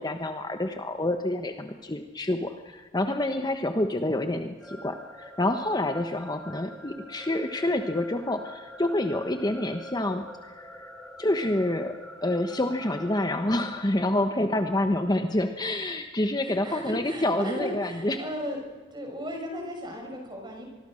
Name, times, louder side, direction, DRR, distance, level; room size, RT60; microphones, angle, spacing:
voice 1, 0.0-10.7 11.2-11.9 12.2-18.2, left 1 dB, 20° left, 6 dB, 1.1 m, -28 dB
sound 1, 4.6-13.8, equal, 5° left, 2.7 m, -45 dB
voice 2, 16.4-18.6 18.9-20.7, equal, 25° right, 2 dB, 6.1 m, -36 dB
25.5 x 21.0 x 6.5 m, 1.4 s
head